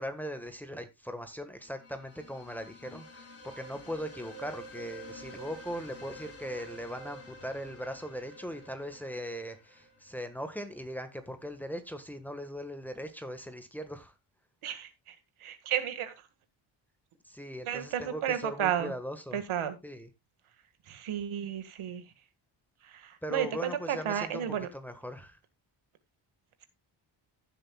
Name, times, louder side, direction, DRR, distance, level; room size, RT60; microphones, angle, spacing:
voice 1, 0.0-3.3 3.6-14.1 17.2-19.4 19.8-20.1 23.2-25.4, equal, 5° left, 7 dB, 1.5 m, -39 dB
sound 1, 1.7-10.5, equal, 30° left, 3.7 m, -49 dB
voice 2, 15.4-16.1 17.7-18.9 19.3-19.8 20.9-22.0 22.9-24.7, right 9 dB, 80° right, 10 dB, 1.8 m, -32 dB
15.5 x 7.8 x 2.3 m, 0.22 s
cardioid pair, 135°, 50 cm